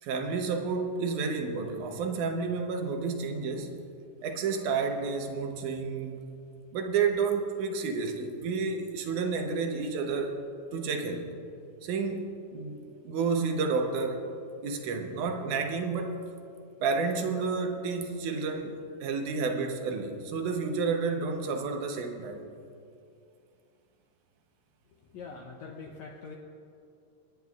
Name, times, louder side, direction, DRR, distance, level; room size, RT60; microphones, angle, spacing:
voice 1, 0.0-3.8 4.2-6.2 6.7-10.4 10.7-11.3 11.8-12.8 13.0-14.3 14.6-16.2 16.8-22.5, right 4 dB, 75° right, 5 dB, 2.3 m, -30 dB
voice 2, 25.0-26.4, left 4 dB, 75° left, 0 dB, 1.9 m, -44 dB
27.0 x 9.5 x 2.4 m, 2.6 s
omnidirectional pair, 3.7 m